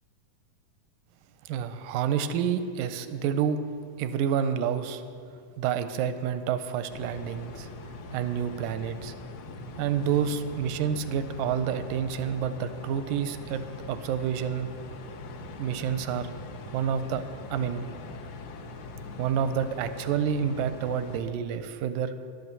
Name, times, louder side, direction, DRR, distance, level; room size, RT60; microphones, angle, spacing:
voice 1, 1.5-3.6 4.0-5.0 5.6-7.7 8.1-9.1 9.8-13.6 13.9-14.7 15.5-16.3 16.7-17.2 17.5-17.9 19.2-22.1, right 8 dB, 85° right, 11 dB, 2.3 m, -28 dB
sound 1, 6.9-21.2, left 2 dB, 70° left, 2.5 m, -42 dB
11.5 x 11.0 x 6.8 m, 2.4 s
omnidirectional pair, 3.9 m